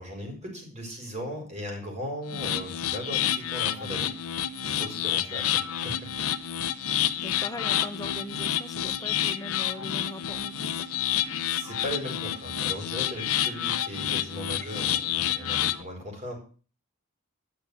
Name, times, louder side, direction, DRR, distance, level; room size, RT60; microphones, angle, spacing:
voice 1, 0.0-4.1 4.6-6.1 6.8-7.3 11.5-16.3, equal, 30° right, 1 dB, 4.5 m, -38 dB
sound 1, 2.3-15.8, left 10 dB, 65° left, 0.7 m, -29 dB
voice 2, 7.2-10.9, left 1 dB, 15° left, 7 dB, 1.1 m, -40 dB
10.5 x 6.3 x 7.0 m, 0.38 s
head